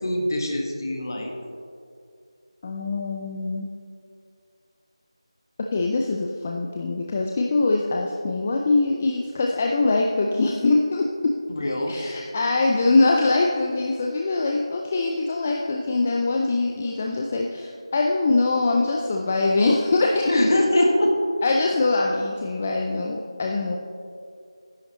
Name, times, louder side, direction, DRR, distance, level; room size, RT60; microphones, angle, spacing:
voice 1, 0.0-1.3 11.5-12.3 20.3-21.1, left 1 dB, 45° left, 1 dB, 1.5 m, -23 dB
voice 2, 2.6-3.7 5.6-11.3 11.9-20.3 21.4-23.8, left 3 dB, 20° left, 0 dB, 0.4 m, -23 dB
11.0 x 10.5 x 3.0 m, 2.3 s
figure-of-eight pair, 170°, 3 cm